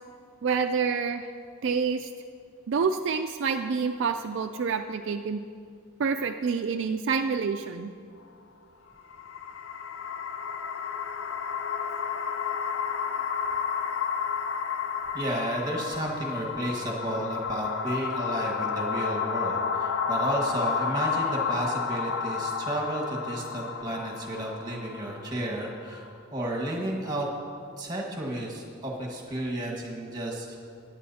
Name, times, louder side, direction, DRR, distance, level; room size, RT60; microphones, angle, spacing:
voice 1, 0.4-1.3 1.6-2.1 2.7-5.5 6.0-7.9, right 5 dB, 55° right, 6 dB, 0.3 m, -27 dB
sound 1, 9.0-26.2, left 6 dB, 70° left, 0.5 m, -31 dB
voice 2, 15.1-26.0 26.3-27.3 27.8-30.6, right 1 dB, 20° right, -1 dB, 1.6 m, -32 dB
18.5 x 9.5 x 2.8 m, 2.3 s
head